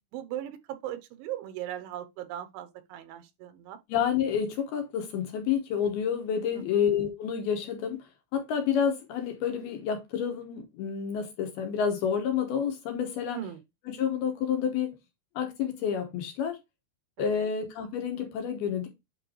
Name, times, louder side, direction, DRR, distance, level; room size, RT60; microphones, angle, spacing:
voice 1, 0.1-3.8 6.5-6.8 13.3-13.6 17.2-17.5, right 11 dB, 85° right, 3.4 m, -38 dB
voice 2, 3.9-8.0 8.3-13.4 13.9-14.9 15.4-16.6 17.2-18.9, left 7 dB, 70° left, 2.7 m, -29 dB
8.7 x 4.6 x 3.2 m
omnidirectional pair, 5.3 m